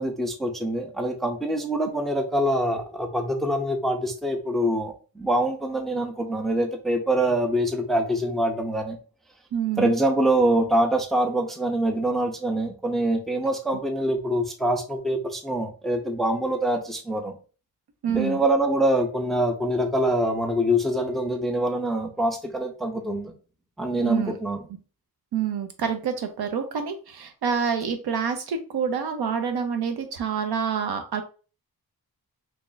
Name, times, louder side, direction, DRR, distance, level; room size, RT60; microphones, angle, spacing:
voice 1, 0.0-9.0 9.8-17.3 18.1-23.3 23.8-24.6, right 1 dB, ahead, 4 dB, 0.4 m, -25 dB
voice 2, 9.5-9.9 18.0-18.4 24.0-24.3 25.3-31.2, right 7 dB, 85° right, 7 dB, 0.7 m, -27 dB
2.8 x 2.4 x 3.9 m, 0.36 s
wide cardioid pair, 165°, 37 cm